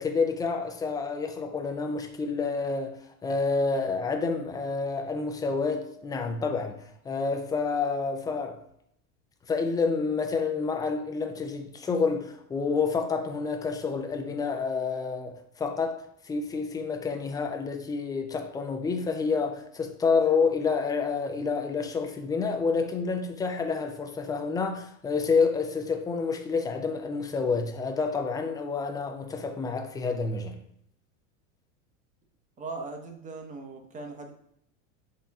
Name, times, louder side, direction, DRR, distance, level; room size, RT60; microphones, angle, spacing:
voice 1, 0.0-3.0 3.2-6.8 7.0-8.6 9.5-30.6, left 4 dB, 10° left, 0.4 m, -28 dB
voice 2, 32.6-34.3, right 3 dB, 20° right, 0.8 m, -39 dB
4.2 x 3.7 x 3.5 m
supercardioid pair, 125°, 39 cm